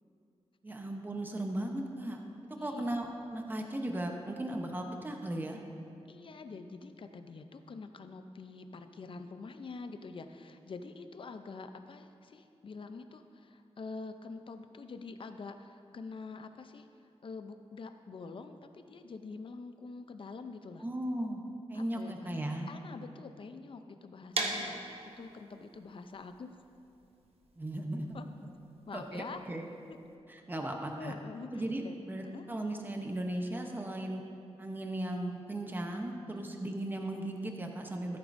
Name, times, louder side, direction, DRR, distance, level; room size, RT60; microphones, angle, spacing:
voice 1, 0.6-2.2 2.6-5.6 20.8-21.4 21.7-22.7 27.6-28.2 28.9-29.6 30.3-31.1 31.5-34.2 34.6-38.2, right 1 dB, 15° right, 3 dB, 0.8 m, -37 dB
voice 2, 6.1-16.9 17.2-20.9 21.7-22.4 22.7-26.5 28.1-28.5 28.9-29.4 29.9-30.0 30.5-30.6 30.9-32.5 36.3-36.7, left 4 dB, 50° left, 8 dB, 0.5 m, -46 dB
sound 1, 24.3-30.1, right 2 dB, 65° right, 1.0 m, -40 dB
14.0 x 8.8 x 2.6 m, 2.6 s
wide cardioid pair, 130°, 11 cm